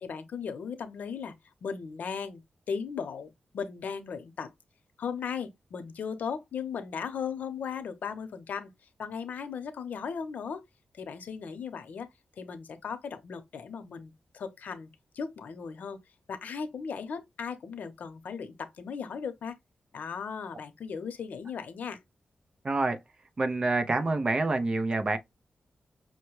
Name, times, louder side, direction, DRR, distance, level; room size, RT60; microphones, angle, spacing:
voice 1, 0.0-1.3 1.6-2.4 2.7-4.5 5.0-8.7 9.0-10.6 11.0-12.1 12.4-16.0 16.3-19.6 19.9-22.0, left 6 dB, 85° left, 0.7 m, -37 dB
voice 2, 22.6-23.0 23.4-25.2, right 2 dB, 30° right, 0.4 m, -27 dB
5.4 x 2.2 x 3.0 m
wide cardioid pair, 170°, 3 cm